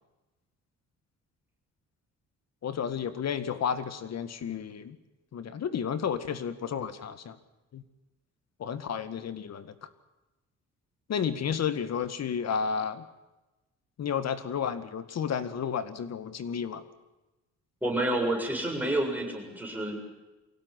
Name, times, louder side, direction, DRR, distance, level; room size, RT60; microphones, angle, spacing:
voice 1, 2.6-5.0 5.3-7.4 7.7-7.8 8.6-9.9 11.1-13.1 14.0-16.8, left 7 dB, 60° left, 12 dB, 2.0 m, -32 dB
voice 2, 17.8-20.0, right 1 dB, 5° right, 0 dB, 7.5 m, -29 dB
23.5 x 17.0 x 9.7 m, 1.0 s
cardioid pair, 90°, 30 cm